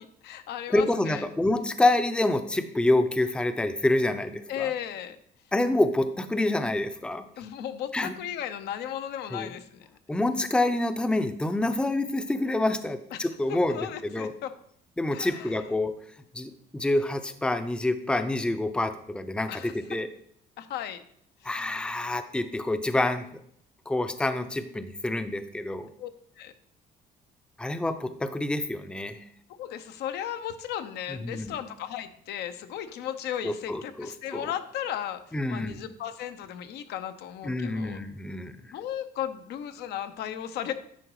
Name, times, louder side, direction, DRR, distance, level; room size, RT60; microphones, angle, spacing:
voice 1, 0.0-1.3 4.5-5.2 7.4-9.9 13.1-14.5 15.1-15.7 19.5-19.8 20.6-21.0 21.4-21.6 26.0-26.1 26.4-26.5 29.6-38.0 38.7-40.7, left 10 dB, 75° left, 10 dB, 0.8 m, -35 dB
voice 2, 0.7-4.7 5.5-7.2 7.9-8.1 9.3-9.5 10.1-14.3 15.0-15.9 16.3-20.1 21.4-23.3 23.9-25.9 27.6-29.2 31.1-31.6 33.4-34.5 35.3-35.8 37.4-38.6, left 2 dB, 5° left, 9 dB, 0.6 m, -27 dB
10.0 x 3.9 x 4.7 m, 0.67 s
cardioid pair, 110°, 17 cm